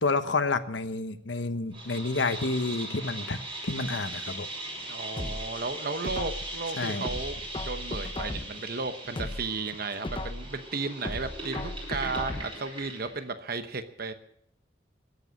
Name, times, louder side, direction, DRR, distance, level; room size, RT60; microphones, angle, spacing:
voice 1, 0.0-3.4 3.6-4.5 6.8-7.0, left 3 dB, 75° left, 10 dB, 1.1 m, -29 dB
sound 1, 1.7-13.2, right 1 dB, 30° right, 4.9 m, -40 dB
voice 2, 4.8-14.1, right 4 dB, 50° right, 9 dB, 0.9 m, -34 dB
sound 2, 5.2-6.6 7.0-8.7 9.0-10.6 11.0-12.7 13.0-13.1, left 1 dB, 25° left, 0.7 m, -36 dB
22.5 x 8.0 x 6.3 m, 0.72 s
head